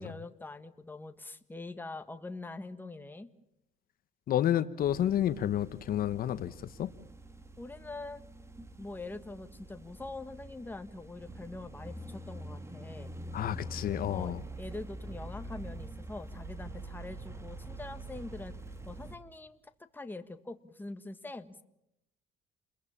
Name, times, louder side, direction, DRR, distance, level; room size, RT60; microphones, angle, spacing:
voice 1, 0.0-3.3 7.6-8.2 8.7-13.1 14.1-18.5 18.8-19.6 19.9-21.6, left 2 dB, 10° left, 8 dB, 1.6 m, -44 dB
voice 2, 4.3-6.9 13.3-14.4, left 11 dB, 60° left, 12 dB, 1.1 m, -30 dB
sound 1, 4.8-19.2, right 1 dB, 15° right, 2.0 m, -45 dB
29.5 x 22.0 x 7.3 m, 0.85 s
cardioid pair, 110°, 17 cm